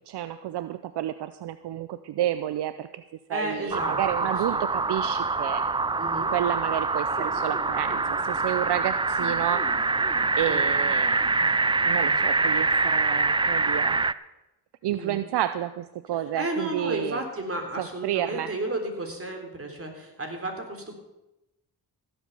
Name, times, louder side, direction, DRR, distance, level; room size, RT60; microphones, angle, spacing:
voice 1, 0.1-3.0 3.3-5.6 6.3-10.0 10.4-11.2 11.8-14.0 14.8-17.2 18.0-18.5, right 12 dB, 75° right, 12 dB, 0.6 m, -30 dB
voice 2, 3.3-4.6 5.9-6.3 10.5-10.6 14.9-15.2 16.1-21.0, right 1 dB, 35° right, 3 dB, 3.8 m, -33 dB
sound 1, 3.7-14.1, right 3 dB, 15° right, 0.4 m, -25 dB
sound 2, 7.1-12.6, left 1 dB, 5° left, 4.4 m, -45 dB
16.0 x 8.1 x 6.8 m, 0.94 s
cardioid pair, 60°, 41 cm